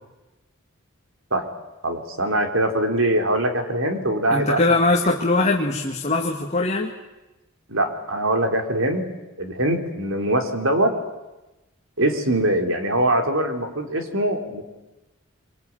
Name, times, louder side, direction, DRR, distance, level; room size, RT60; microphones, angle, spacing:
voice 1, 1.8-4.6 7.7-9.1 9.4-10.9 12.0-14.6, right 1 dB, 65° right, 5 dB, 3.7 m, -22 dB
voice 2, 4.3-6.9, left 2 dB, 30° left, 0 dB, 2.1 m, -21 dB
26.0 x 24.5 x 9.0 m, 1.0 s
head